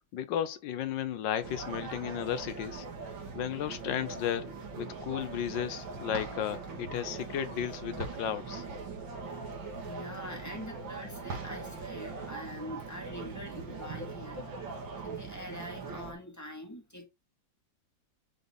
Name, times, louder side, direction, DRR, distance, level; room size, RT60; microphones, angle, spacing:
voice 1, 0.1-2.8 3.3-4.5 4.8-8.6, left 9 dB, 75° left, 1.4 m, -34 dB
sound 1, 1.4-16.1, right 4 dB, 90° right, 2.4 m, -41 dB
voice 2, 9.8-14.5 15.0-17.1, equal, 10° left, 1.8 m, -44 dB
9.1 x 4.1 x 3.5 m
omnidirectional pair, 2.1 m